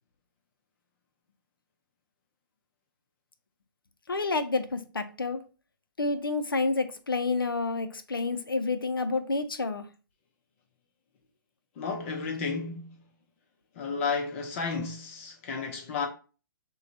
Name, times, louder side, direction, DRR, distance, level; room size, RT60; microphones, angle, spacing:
voice 1, 4.1-5.4 6.0-9.8, left 3 dB, 85° left, 0.6 m, -29 dB
voice 2, 11.8-13.0 13.8-16.1, left 5 dB, 35° left, 0.7 m, -32 dB
6.4 x 2.3 x 2.6 m
figure-of-eight pair, 130°, 11 cm